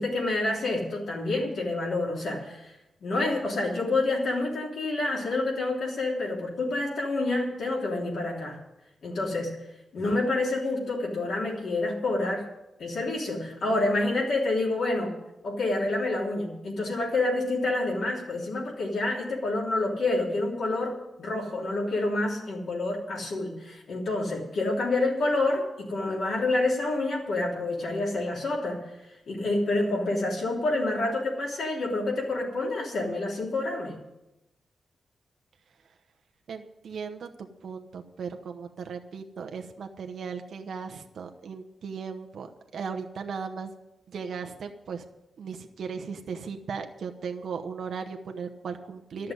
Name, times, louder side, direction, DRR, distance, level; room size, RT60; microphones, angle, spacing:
voice 1, 0.0-2.7 3.0-8.6 9.0-9.6 9.9-12.4 12.8-15.1 15.4-28.8 29.3-34.0, left 2 dB, 65° left, -3 dB, 3.3 m, -28 dB
voice 2, 36.5-43.7 44.1-45.0 45.4-49.3, right 6 dB, 65° right, 5 dB, 0.9 m, -37 dB
13.0 x 6.7 x 9.4 m, 0.91 s
wide cardioid pair, 165°, 0 cm